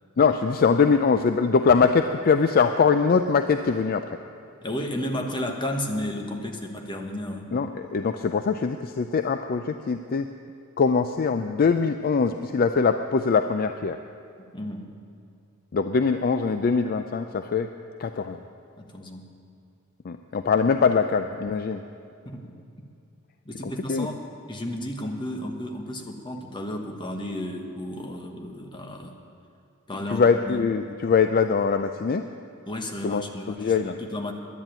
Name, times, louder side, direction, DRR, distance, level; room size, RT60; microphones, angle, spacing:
voice 1, 0.2-4.1 7.5-10.3 10.8-14.0 15.7-17.7 18.0-18.4 20.0-21.8 23.6-24.1 30.1-32.3 33.0-33.2 33.6-34.0, left 5 dB, 45° left, 8 dB, 0.4 m, -22 dB
voice 2, 4.6-7.5 14.4-14.9 18.8-19.3 22.2-22.9 23.4-24.2 24.5-29.2 29.9-30.6 32.6-34.3, left 1 dB, 20° left, 3 dB, 1.2 m, -33 dB
11.0 x 10.5 x 8.8 m, 2.5 s
head